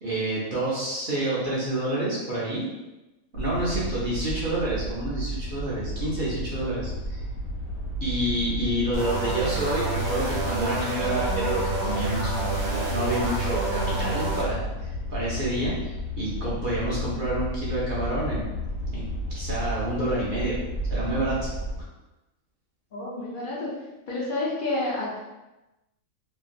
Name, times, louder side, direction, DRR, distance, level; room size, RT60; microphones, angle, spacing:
voice 1, 0.0-2.7 3.3-7.2 8.0-18.5 18.9-20.6 20.9-21.5, right 1 dB, 45° right, -7 dB, 0.7 m, -29 dB
sound 1, 3.3-21.8, equal, 70° left, 1.2 m, -32 dB
sound 2, 8.9-14.5, right 2 dB, 85° right, 1.2 m, -29 dB
voice 2, 22.9-23.7 24.1-25.2, left 2 dB, 50° left, -5 dB, 0.7 m, -30 dB
3.0 x 2.5 x 2.4 m, 1.0 s
omnidirectional pair, 1.5 m